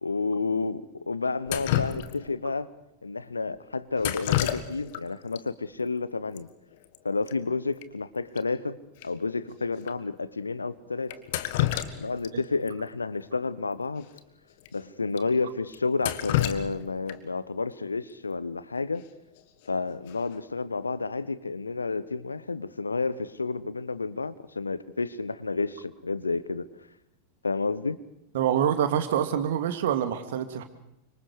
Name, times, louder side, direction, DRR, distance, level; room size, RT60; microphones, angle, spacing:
voice 1, 0.0-2.7 3.0-6.5 7.0-8.8 9.0-11.2 12.0-14.1 14.7-19.0 19.7-26.7 27.4-28.0, left 4 dB, 80° left, 16 dB, 1.1 m, -30 dB
Drip, 1.5-2.5 4.0-5.0 5.3-5.4 6.4-6.5 6.7-7.0 7.3-7.4 7.8-7.9 8.4-8.5 9.0-9.1 9.8-9.9 11.1-12.3 12.7-12.8 14.1-14.2 14.6-14.7 15.2-15.3 15.7-17.4 19.4-19.7 20.1-20.5, left 13 dB, 50° left, 1.7 m, -29 dB
voice 2, 28.3-30.6, right 9 dB, 55° right, 8 dB, 2.4 m, -26 dB
28.5 x 25.5 x 4.9 m, 0.83 s
figure-of-eight pair, 90°, 0 cm